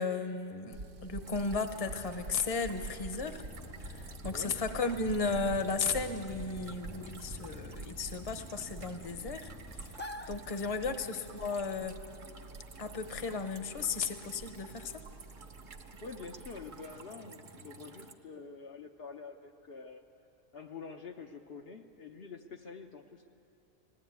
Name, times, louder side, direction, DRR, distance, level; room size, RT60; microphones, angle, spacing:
voice 1, 0.0-3.4 3.8-9.5 9.8-12.0 12.8-14.9, left 4 dB, 30° left, 8 dB, 0.9 m, -35 dB
sound 1, 0.7-17.0, right 3 dB, 75° right, 1.2 m, -48 dB
sound 2, 1.2-18.1, right 3 dB, 45° right, 1.0 m, -52 dB
sound 3, 3.5-11.0, left 1 dB, 15° left, 0.4 m, -49 dB
voice 2, 16.0-20.0 20.5-23.3, left 5 dB, 60° left, 2 dB, 0.9 m, -47 dB
19.5 x 15.0 x 9.3 m, 2.8 s
omnidirectional pair, 1.3 m